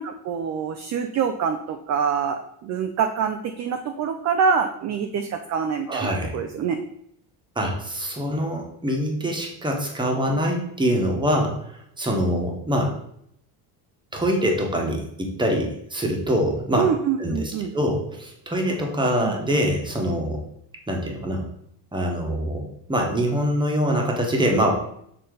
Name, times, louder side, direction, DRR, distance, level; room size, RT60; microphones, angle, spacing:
voice 1, 0.0-6.8 16.8-17.7 19.2-19.3, right 6 dB, 35° right, 6 dB, 0.4 m, -25 dB
voice 2, 5.9-6.4 7.6-13.0 14.1-16.8 17.2-20.4 20.9-21.5 21.9-24.7, equal, 10° right, 0 dB, 1.2 m, -24 dB
6.5 x 4.1 x 3.8 m, 0.71 s
cardioid pair, 135°, 50 cm